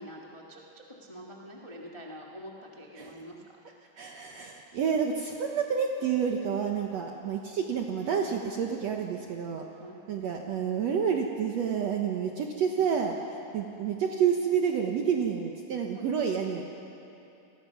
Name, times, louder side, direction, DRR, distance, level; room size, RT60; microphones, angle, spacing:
voice 1, 0.0-3.6 9.8-10.0 15.9-16.3, equal, 15° left, -2 dB, 1.1 m, -46 dB
voice 2, 4.0-9.7 10.1-13.2 13.5-16.6, right 7 dB, 65° right, 2 dB, 2.0 m, -29 dB
28.5 x 19.5 x 5.9 m, 2.8 s
omnidirectional pair, 3.7 m